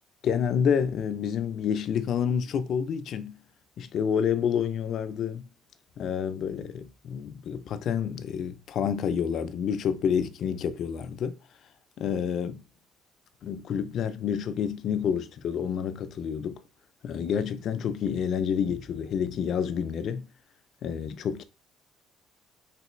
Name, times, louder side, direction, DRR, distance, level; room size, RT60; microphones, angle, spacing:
voice 1, 0.2-3.4 3.8-5.5 6.0-11.4 12.0-12.6 13.4-16.6 17.0-20.3 20.8-21.4, left 7 dB, 60° left, 0.4 m, -28 dB
3.3 x 2.9 x 3.0 m
cardioid pair, 115°, 0 cm